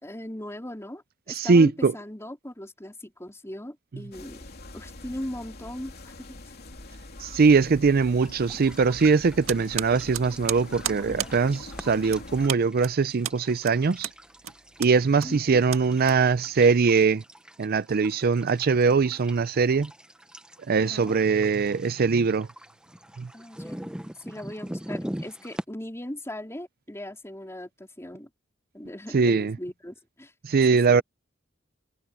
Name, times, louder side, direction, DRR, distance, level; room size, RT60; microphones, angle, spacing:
voice 1, 0.0-4.5 4.7-6.6 15.2-15.6 20.8-21.2 23.3-28.3 28.7-30.3 30.7-31.0, left 1 dB, 15° left, 4.1 m, -39 dB
voice 2, 1.3-1.9 7.2-14.1 14.8-17.2 17.6-19.9 20.7-22.5 23.2-23.3 29.1-29.6 30.4-31.0, right 4 dB, 50° right, 0.5 m, -22 dB
sound 1, 4.1-12.5, left 2 dB, 50° left, 3.3 m, -44 dB
sound 2, 8.2-25.6, equal, 5° right, 0.7 m, -43 dB
sound 3, 9.5-16.7, right 11 dB, 90° right, 1.7 m, -35 dB
head